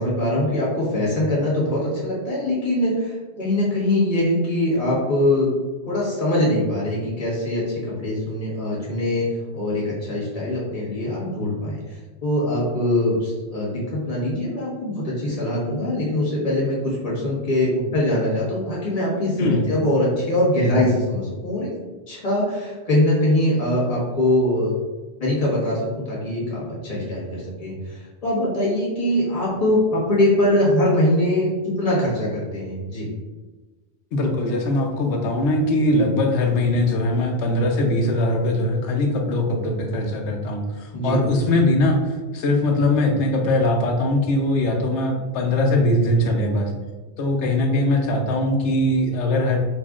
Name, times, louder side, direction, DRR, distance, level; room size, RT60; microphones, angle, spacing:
voice 1, 0.0-5.5 5.8-9.3 9.5-12.0 12.2-21.7 22.1-24.7 25.2-33.1 40.9-41.2, left 1 dB, 35° left, -7 dB, 1.3 m, -22 dB
voice 2, 34.1-46.7 47.2-49.6, left 1 dB, 85° left, 3 dB, 0.9 m, -21 dB
5.6 x 2.5 x 2.3 m, 1.2 s
omnidirectional pair, 1.1 m